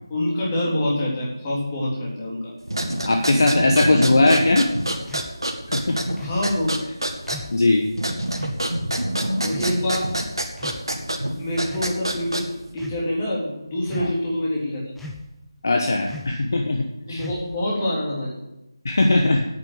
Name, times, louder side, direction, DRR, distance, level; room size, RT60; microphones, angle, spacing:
voice 1, 0.1-2.5 6.2-6.7 9.4-10.1 11.2-14.8 17.1-18.3, left 1 dB, 20° left, -5 dB, 3.7 m, -26 dB
sound 1, 2.6-12.7, right 1 dB, 75° right, 2.1 m, -27 dB
voice 2, 3.0-4.7 5.7-6.0 7.5-7.9 15.6-17.2 18.8-19.5, left 2 dB, 45° left, 3 dB, 1.2 m, -19 dB
sound 2, 5.1-5.3 6.2-6.5 7.3-7.6 8.4-8.6 9.5-9.8 10.5-11.1 11.6-12.0 12.7-13.0 13.9-14.3 15.0-15.4 16.1-16.4 17.2-17.6, left 2 dB, ahead, 0.6 m, -38 dB
9.6 x 9.2 x 8.1 m, 0.91 s
figure-of-eight pair, 160°, 2 cm